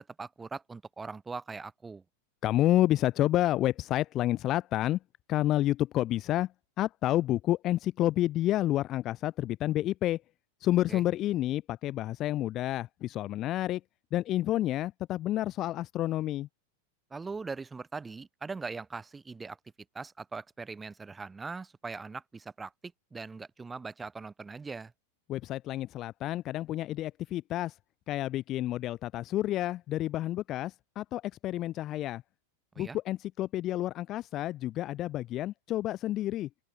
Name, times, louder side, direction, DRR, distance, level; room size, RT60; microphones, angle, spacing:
voice 1, 0.0-2.0 10.9-11.0 17.1-19.6 19.9-24.9 32.7-33.0, right 4 dB, 15° right, 3.0 m, -41 dB
voice 2, 2.4-5.0 5.3-6.5 6.8-10.2 10.6-13.8 14.1-16.5 25.3-27.7 28.1-32.2 32.8-36.5, left 14 dB, 35° left, 0.6 m, -29 dB
open air
figure-of-eight pair, 90°, 0 cm